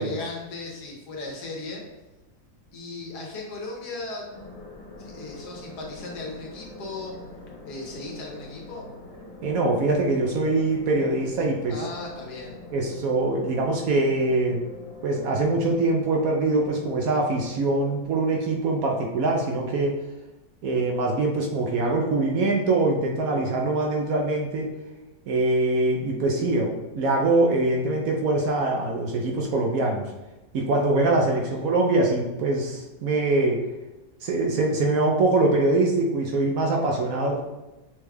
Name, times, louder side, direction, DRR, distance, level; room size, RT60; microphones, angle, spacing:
voice 1, 0.0-1.8 2.7-4.3 5.0-7.2 7.7-8.9 11.7-12.6 31.4-31.7, left 3 dB, 75° left, -1 dB, 1.4 m, -37 dB
sound 1, 4.3-18.1, left 3 dB, 55° left, 1.5 m, -44 dB
voice 2, 9.4-11.8 12.7-14.7 15.0-20.0 20.6-24.7 25.3-30.1 30.5-33.6 34.2-37.4, right 2 dB, 70° right, 0 dB, 0.9 m, -23 dB
6.0 x 2.3 x 3.3 m, 1.1 s
omnidirectional pair, 1.8 m